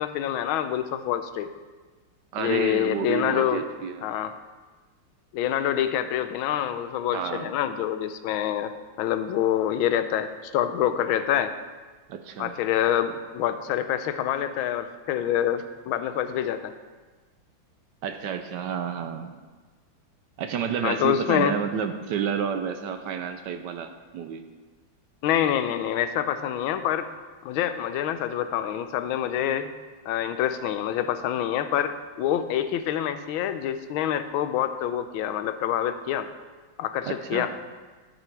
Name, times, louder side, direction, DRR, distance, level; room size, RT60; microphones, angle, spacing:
voice 1, 0.0-1.5 2.4-3.6 4.0-4.3 5.3-8.7 9.0-11.5 12.4-16.7 20.8-21.5 25.2-27.1 27.4-29.7 30.1-36.3 36.8-37.5, left 10 dB, 90° left, 11 dB, 1.4 m, -26 dB
voice 2, 2.3-4.1 7.1-7.5 12.1-12.6 18.0-19.4 20.4-24.4 37.0-37.5, right 7 dB, 70° right, 8 dB, 1.1 m, -30 dB
12.5 x 6.4 x 4.6 m, 1.3 s
omnidirectional pair, 2.2 m